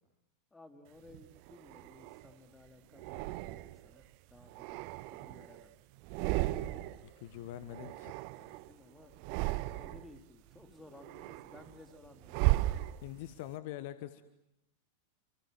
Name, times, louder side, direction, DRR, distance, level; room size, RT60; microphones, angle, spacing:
voice 1, 0.5-4.8 5.1-5.7 8.4-9.2 9.5-12.9, left 2 dB, 10° left, 6 dB, 2.9 m, -57 dB
sound 1, 1.1-2.3 3.0-3.9 4.4-5.6 6.0-7.1 7.3-8.7 9.1-10.2 10.6-13.4, right 18 dB, 45° right, 1.1 m, -36 dB
voice 2, 7.0-8.1 13.0-14.2, left 13 dB, 50° left, 13 dB, 1.2 m, -44 dB
29.5 x 27.0 x 7.5 m, 0.84 s
figure-of-eight pair, 90°, 0 cm